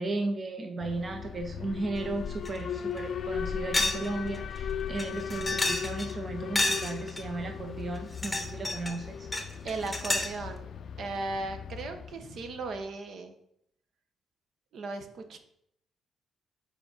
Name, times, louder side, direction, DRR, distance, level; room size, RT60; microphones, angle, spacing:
voice 1, 0.0-9.3, right 2 dB, 35° right, 5 dB, 0.6 m, -35 dB
Alarm, 0.8-12.8, left 7 dB, 55° left, 0.3 m, -38 dB
sound 1, 2.4-2.6 3.0-3.1 3.7-4.1 4.3-4.4 5.0-6.1 6.5-7.2 8.0-9.0 9.3-10.4, left 2 dB, 10° left, 0.9 m, -30 dB
voice 2, 9.6-10.7 11.0-13.3 14.7-15.4, right 3 dB, 65° right, 7 dB, 0.8 m, -36 dB
4.9 x 4.5 x 5.1 m, 0.73 s
cardioid pair, 90°, 0 cm